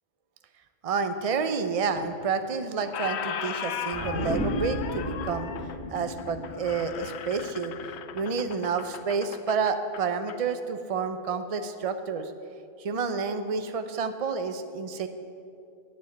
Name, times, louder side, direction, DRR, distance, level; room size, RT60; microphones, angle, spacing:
voice 1, 0.8-5.5 5.9-7.7 8.1-12.3 12.8-15.1, right 5 dB, 35° right, 9 dB, 0.7 m, -29 dB
Squeak, 2.0-2.5 2.8-10.4, left 8 dB, 65° left, 0.8 m, -38 dB
sound 1, 3.9-8.5 8.8-8.9, left 1 dB, 85° left, 4.8 m, -34 dB
10.5 x 8.2 x 9.7 m, 2.5 s
omnidirectional pair, 1.4 m